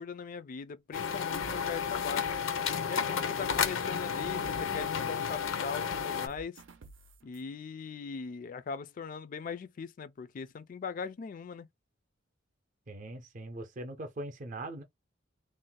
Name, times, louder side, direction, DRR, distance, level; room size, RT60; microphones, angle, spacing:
voice 1, 0.0-2.3 2.9-6.6 7.2-11.7, left 5 dB, 45° left, 0.3 m, -40 dB
sound 1, 0.9-6.3, left 7 dB, 90° left, 0.6 m, -32 dB
sound 2, 1.3-3.2 3.4-7.4, right 4 dB, 85° right, 0.6 m, -51 dB
voice 2, 12.9-14.8, right 1 dB, 40° right, 0.6 m, -41 dB
2.5 x 2.1 x 3.8 m
head